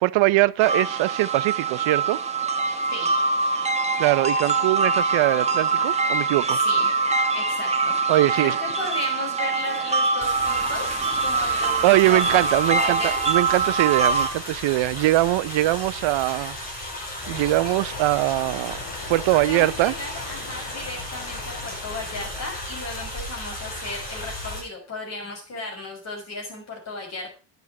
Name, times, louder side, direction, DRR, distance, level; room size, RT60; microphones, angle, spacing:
voice 1, 0.0-2.2 4.0-6.6 8.1-8.6 11.8-16.6 17.3-18.8 19.1-19.9, right 18 dB, 85° right, 0.7 m, -22 dB
sound 1, 0.6-14.3, right 4 dB, 15° right, 1.3 m, -24 dB
voice 2, 7.3-7.9 8.4-13.2 19.3-27.4, left 3 dB, 35° left, 6.3 m, -35 dB
sound 2, 10.2-24.6, left 1 dB, 20° left, 5.4 m, -35 dB
sound 3, 17.2-22.5, left 4 dB, 70° left, 6.4 m, -40 dB
11.0 x 9.2 x 5.9 m
cardioid pair, 175°, 44 cm